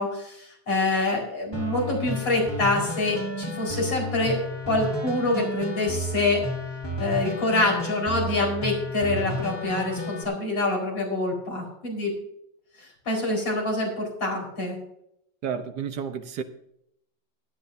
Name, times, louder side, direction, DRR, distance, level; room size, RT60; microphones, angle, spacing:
voice 1, 0.0-4.4 4.7-6.4 7.0-12.1 12.8-14.8, left 2 dB, 90° left, 5.6 m, -26 dB
sound 1, 1.5-10.2, left 1 dB, 15° left, 1.8 m, -32 dB
voice 2, 15.4-16.4, right 7 dB, 65° right, 1.5 m, -31 dB
17.5 x 12.5 x 2.7 m
omnidirectional pair, 2.0 m